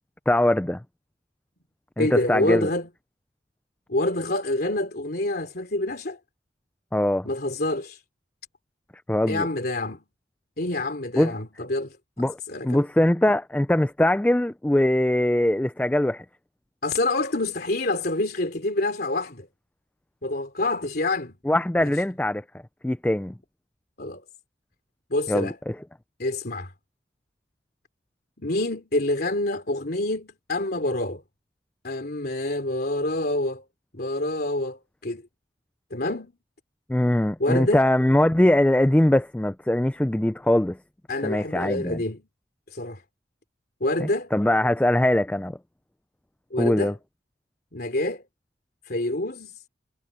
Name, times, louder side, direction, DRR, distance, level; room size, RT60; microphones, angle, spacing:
voice 1, 0.3-0.8 2.0-2.7 6.9-7.3 9.1-9.5 11.2-11.3 12.2-12.4 12.6-16.2 21.5-22.4 22.8-23.3 25.3-25.8 36.9-40.8 41.2-42.0 44.0-45.6 46.6-46.9, left 1 dB, 10° left, 0.3 m, -22 dB
voice 2, 2.0-2.9 3.9-6.2 7.2-8.0 9.3-10.0 10.6-12.8 16.8-19.5 20.2-21.3 21.8-21.9 24.0-24.2 25.1-25.6 26.2-26.7 28.4-31.2 31.8-33.6 33.9-35.2 35.9-36.3 37.4-37.8 41.1-42.3 42.7-43.0 43.8-44.3 46.5-47.0 47.7-48.2 48.9-49.6, left 2 dB, 55° left, 3.1 m, -27 dB
head